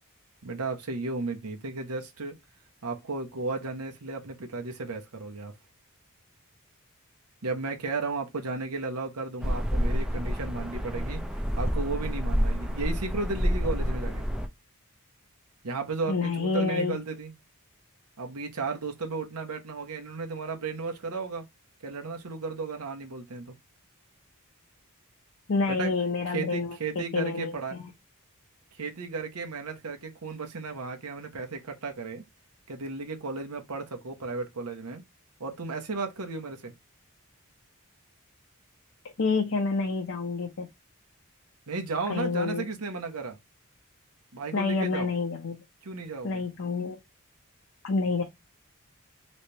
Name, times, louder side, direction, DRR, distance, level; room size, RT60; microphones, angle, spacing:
voice 1, 0.4-2.3 2.8-5.5 7.4-11.2 11.6-14.2 15.6-17.3 18.2-21.4 21.8-23.5 25.7-25.9 26.3-27.8 28.8-32.2 32.7-35.0 35.4-36.7 41.7-43.4 44.3-45.1 45.8-46.4, right 3 dB, 85° right, 1.0 m, -34 dB
sound 1, 9.4-14.5, equal, 5° right, 0.5 m, -28 dB
voice 2, 16.1-17.0 25.5-27.9 39.2-40.7 42.1-42.7 44.5-45.6 46.2-47.0 47.8-48.2, left 4 dB, 60° left, 0.7 m, -28 dB
3.3 x 3.2 x 2.7 m
head